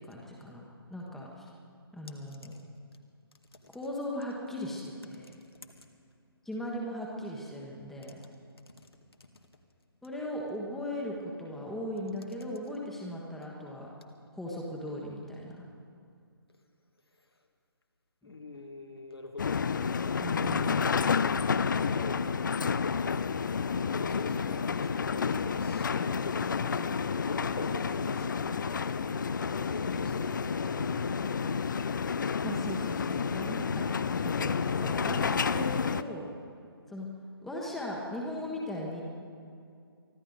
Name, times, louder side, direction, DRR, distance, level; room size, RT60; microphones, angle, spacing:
voice 1, 0.0-1.5 1.9-2.5 3.7-5.3 6.4-8.2 10.0-13.9 14.3-15.7 18.2-18.3 26.8-26.9 32.4-33.9 34.2-36.3 36.9-37.1 37.4-39.0, left 1 dB, ahead, -3 dB, 1.3 m, -38 dB
voice 2, 18.2-19.7 21.5-22.3 23.9-26.7 27.1-31.3, left 2 dB, 75° left, 4 dB, 2.0 m, -43 dB
sound 1, 19.4-36.0, left 6 dB, 50° left, 0.5 m, -30 dB
24.0 x 14.0 x 4.0 m, 2.4 s
figure-of-eight pair, 140°, 13 cm